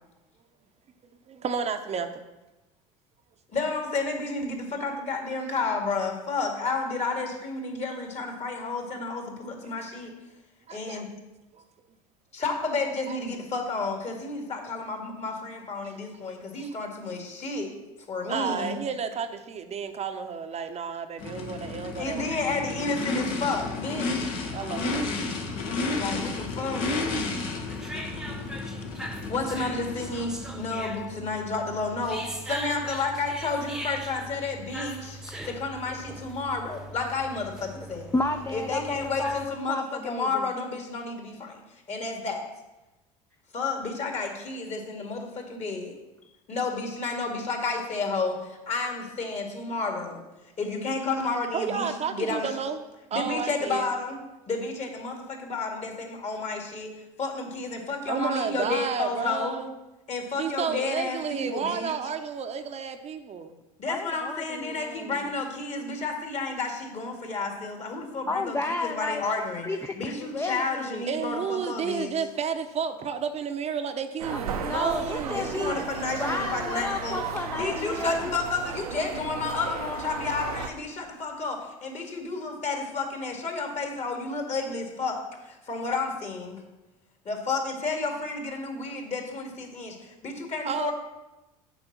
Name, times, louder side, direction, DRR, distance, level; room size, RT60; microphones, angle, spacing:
voice 1, 1.3-2.2 10.7-11.0 11.5-11.6 13.1-13.2 15.8-15.9 16.5-16.8 18.3-22.3 24.5-25.0 25.7-25.8 51.5-52.8 53.1-53.9 58.1-59.7 60.4-63.6 71.1-75.8 90.6-90.9, right 6 dB, 35° right, 7 dB, 0.7 m, -31 dB
voice 2, 3.5-10.1 10.7-11.1 12.3-17.7 18.1-18.8 22.0-24.3 26.0-26.9 29.3-38.1 38.5-41.6 41.9-42.4 43.5-46.0 46.5-50.2 50.6-52.5 53.1-54.2 54.5-56.9 57.2-59.6 60.1-61.9 63.8-69.7 70.0-72.1 75.4-77.2 77.5-85.2 85.5-86.6 87.3-90.9, left 3 dB, 40° left, 2 dB, 2.1 m, -31 dB
Race car auto racing / Idling / Accelerating revving vroom, 21.2-30.6, left 3 dB, 70° left, 1.6 m, -32 dB
sound 1, 24.7-39.5, equal, 5° right, 1.0 m, -41 dB
voice 3, 38.1-40.5 63.9-65.1 68.3-69.2 69.6-71.1 74.3-75.9 76.2-78.4, left 3 dB, 15° left, 6 dB, 0.5 m, -32 dB
sound 2, 74.2-80.7, right 6 dB, 85° right, 0.8 m, -35 dB
7.0 x 5.1 x 7.2 m, 1.0 s
hypercardioid pair, 75°, 19 cm